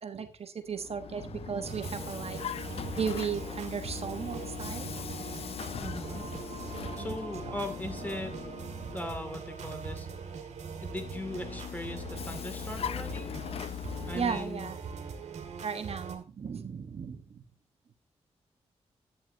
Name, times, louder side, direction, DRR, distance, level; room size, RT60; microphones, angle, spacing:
voice 1, 0.0-2.4 3.0-4.8 6.7-7.2 14.1-14.8 15.6-17.4, right 6 dB, 60° right, 8 dB, 1.2 m, -35 dB
Vehicle, 0.7-9.2 10.9-14.7, left 9 dB, 60° left, 0.4 m, -40 dB
sound 1, 1.6-16.2, right 5 dB, 80° right, 2.1 m, -41 dB
voice 2, 5.8-6.3 7.0-8.3 8.9-10.1 10.8-13.3 14.1-14.7, left 1 dB, 15° left, 7 dB, 2.3 m, -39 dB
11.0 x 9.2 x 2.7 m, 0.31 s
cardioid pair, 65°, 12 cm